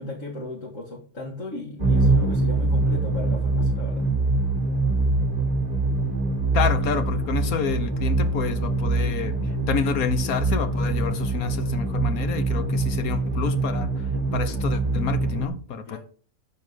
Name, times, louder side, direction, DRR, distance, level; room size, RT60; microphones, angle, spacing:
voice 1, 0.0-4.0 15.9-16.0, left 2 dB, 60° left, 2.4 m, -36 dB
sound 1, 1.8-15.5, right 2 dB, 30° right, 2.1 m, -24 dB
voice 2, 6.5-9.4 9.7-16.0, left 6 dB, 80° left, 1.5 m, -29 dB
12.5 x 4.5 x 5.5 m
omnidirectional pair, 1.5 m